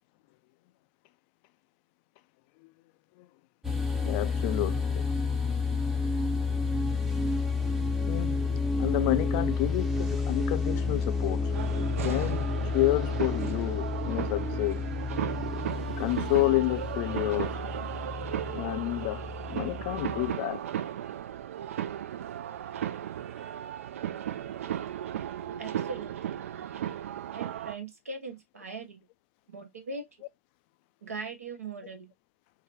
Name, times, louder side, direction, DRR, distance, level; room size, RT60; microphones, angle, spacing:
sound 1, 3.6-20.3, left 4 dB, 5° right, 0.6 m, -30 dB
voice 1, 4.0-5.1 8.1-8.5 8.8-11.5 12.0-12.5 12.7-14.8 16.0-17.6 18.5-20.6, left 19 dB, 45° left, 0.3 m, -29 dB
sound 2, 11.5-27.7, right 10 dB, 65° right, 0.4 m, -36 dB
voice 2, 25.6-26.4 27.3-29.0 29.5-30.0 31.0-32.1, right 4 dB, 80° right, 0.9 m, -40 dB
3.8 x 2.1 x 2.8 m
figure-of-eight pair, 100°, 8 cm